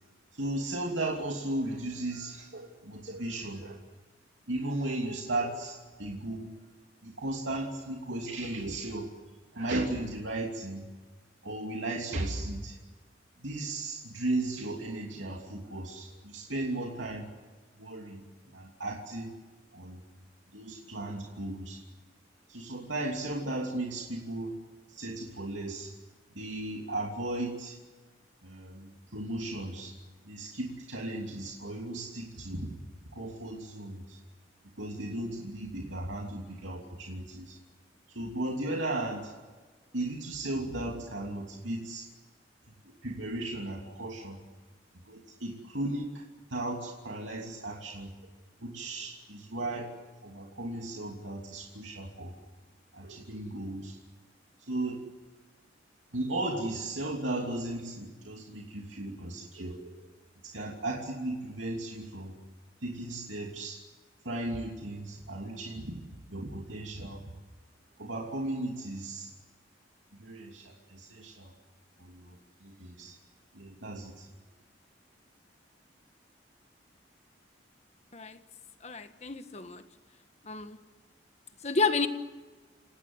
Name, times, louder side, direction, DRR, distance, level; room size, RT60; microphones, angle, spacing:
voice 1, 0.4-3.8 4.5-6.5 7.0-9.1 9.5-10.8 11.4-12.8 13.4-17.3 17.8-18.2 18.5-19.3 19.7-20.0 20.5-21.8 22.5-24.5 24.9-25.9 26.4-27.8 28.4-29.9 30.2-32.8 33.1-34.2 34.8-37.6 38.1-39.3 39.9-42.1 43.0-44.4 45.1-46.2 46.5-48.1 48.6-49.9 50.2-52.3 52.9-54.0 54.7-55.0 56.1-60.1 60.4-62.3 62.8-63.8 64.2-66.0 66.3-67.2 68.0-69.3 70.2-71.5 72.0-72.4 72.6-73.1 73.5-74.2, right 2 dB, 90° right, 0 dB, 3.0 m, -36 dB
voice 2, 78.8-79.8 80.4-80.8 81.6-82.1, left 4 dB, 35° left, 9 dB, 1.4 m, -30 dB
29.0 x 18.5 x 8.0 m, 1.3 s
head